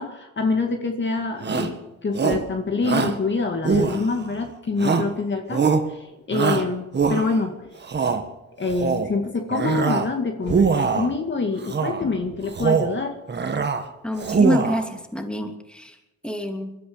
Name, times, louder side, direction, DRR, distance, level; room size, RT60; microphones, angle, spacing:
voice 1, 0.0-7.7 8.2-8.3 8.6-13.2, left 4 dB, 40° left, 4 dB, 2.2 m, -26 dB
Shout, 1.4-1.8 2.1-2.5 2.8-3.2 3.6-4.3 4.8-5.2 5.5-5.9 6.3-7.4 7.8-8.2 8.7-9.1 9.5-10.1 10.4-11.1 11.6-12.0 12.4-13.0 13.3-13.8 14.2-14.9, right 5 dB, 35° right, 1.9 m, -22 dB
voice 2, 14.0-15.9 16.2-16.8, equal, 5° left, 4 dB, 2.9 m, -26 dB
22.0 x 12.5 x 5.1 m, 0.95 s
cardioid pair, 90°, 30 cm